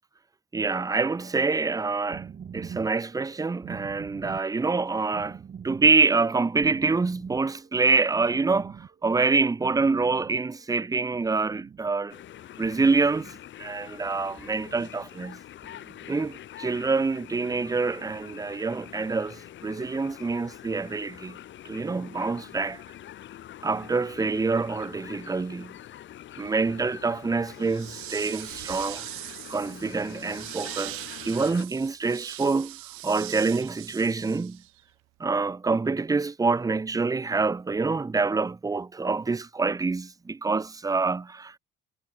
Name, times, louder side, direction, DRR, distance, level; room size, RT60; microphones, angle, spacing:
voice 1, 0.5-2.3 2.5-12.1 12.6-13.3 13.6-15.4 16.1-21.4 21.6-22.8 23.6-25.7 26.4-29.0 29.5-32.8 33.0-34.6 35.2-41.5, right 4 dB, 15° right, 0.9 m, -26 dB
sound 1, 1.9-10.6 10.9-12.0 12.6-13.4 14.1-14.9 15.6-16.4 17.1-17.9 18.6-19.2, right 7 dB, 45° right, 7.0 m, -45 dB
sound 2, 12.1-31.6, left 12 dB, 65° left, 6.8 m, -45 dB
sound 3, 27.6-34.8, right 21 dB, 90° right, 1.2 m, -40 dB
cardioid pair, 100°, 21 cm